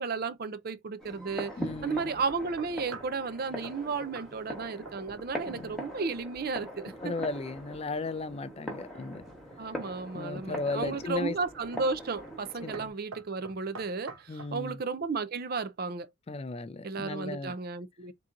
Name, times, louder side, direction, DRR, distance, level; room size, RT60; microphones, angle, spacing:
voice 1, 0.0-1.5 1.8-7.1 9.6-16.1 16.8-18.1, right 4 dB, 45° right, 0.5 m, -33 dB
sound 1, 1.0-12.9, equal, ahead, 1.3 m, -42 dB
voice 2, 1.6-2.2 5.5-5.8 7.0-9.3 9.6-9.7 10.1-11.4 12.6-12.9 14.3-14.8 16.3-17.5, left 3 dB, 30° left, 0.4 m, -36 dB
sound 2, 2.3-3.2 3.6-3.8 4.2-4.3 4.6-5.3 5.6-5.9 9.3-9.9 10.5-10.9 11.7-12.0 12.3-12.5 12.7-14.6, right 3 dB, 80° right, 0.9 m, -46 dB
3.7 x 2.9 x 3.7 m
head